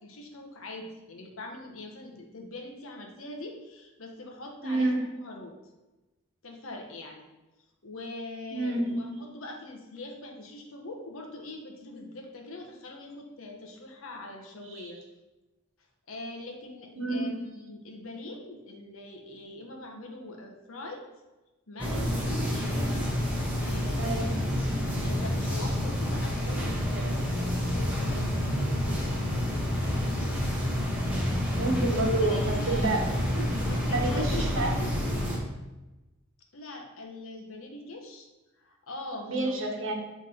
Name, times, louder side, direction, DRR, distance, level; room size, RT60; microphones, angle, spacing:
voice 1, 0.0-4.9 5.2-5.5 6.4-7.2 7.8-15.0 16.1-21.0 21.7-23.1 23.6-24.3 25.0-29.1 30.1-30.4 32.2-32.9 33.6-34.5 36.5-38.3 38.6-39.6, left 2 dB, 80° left, 2 dB, 1.1 m, -42 dB
voice 2, 4.6-5.1 8.5-9.2 14.8-14.9 17.0-17.3 24.0-24.4 31.5-33.0 33.3-34.7 39.2-39.9, right 2 dB, 65° right, 0 dB, 1.2 m, -29 dB
sound 1, 21.8-35.4, left 1 dB, 10° right, 1.3 m, -28 dB
7.5 x 3.5 x 4.3 m, 1.1 s
head